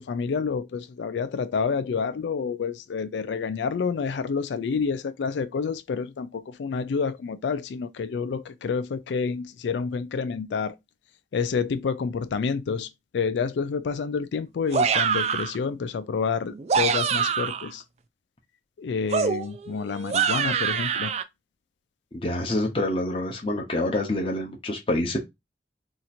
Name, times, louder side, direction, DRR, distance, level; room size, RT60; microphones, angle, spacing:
voice 1, 0.0-10.8 11.3-12.9 13.1-17.8 18.8-21.1, left 5 dB, 80° left, 0.4 m, -28 dB
sound 1, 14.7-15.6 16.5-17.7 19.1-21.2, right 6 dB, 35° right, 0.3 m, -25 dB
voice 2, 22.1-25.2, left 1 dB, 30° left, 0.7 m, -27 dB
2.9 x 2.5 x 4.1 m
head